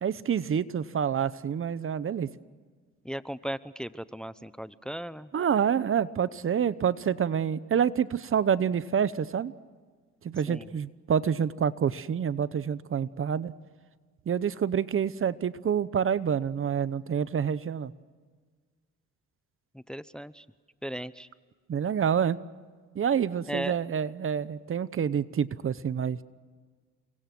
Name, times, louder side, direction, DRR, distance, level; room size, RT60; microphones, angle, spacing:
voice 1, 0.0-2.3 5.3-9.5 10.2-13.5 14.3-17.9 21.7-22.4 22.9-26.2, right 8 dB, 45° right, 16 dB, 0.9 m, -27 dB
voice 2, 3.0-5.3 10.5-10.7 19.7-20.4 20.8-21.3 23.5-23.8, right 1 dB, 5° left, 15 dB, 0.8 m, -36 dB
29.5 x 23.5 x 6.1 m, 1.5 s
cardioid pair, 90°, 30 cm